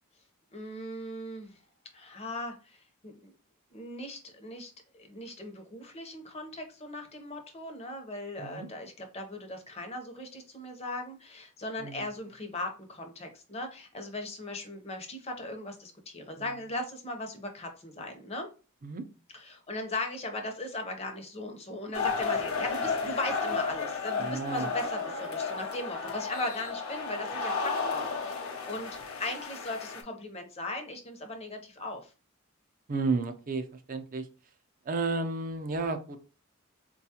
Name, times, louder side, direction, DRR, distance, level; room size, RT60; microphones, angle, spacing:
voice 1, 0.5-1.6 1.9-3.3 3.7-18.5 19.3-32.1, left 1 dB, 30° left, 5 dB, 0.7 m, -38 dB
sound 1, 21.9-30.0, left 4 dB, 80° left, 0.7 m, -33 dB
voice 2, 24.2-24.7 32.9-34.3 34.9-36.2, right 3 dB, 40° right, 9 dB, 0.4 m, -32 dB
4.1 x 2.3 x 2.8 m, 0.34 s
head